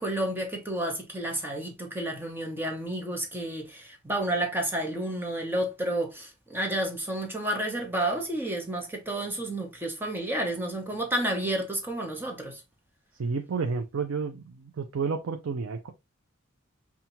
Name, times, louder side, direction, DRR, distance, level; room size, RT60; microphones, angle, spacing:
voice 1, 0.0-12.6, right 1 dB, 10° right, 0.8 m, -31 dB
voice 2, 13.2-15.9, right 5 dB, 80° right, 0.5 m, -31 dB
5.7 x 2.4 x 2.7 m
head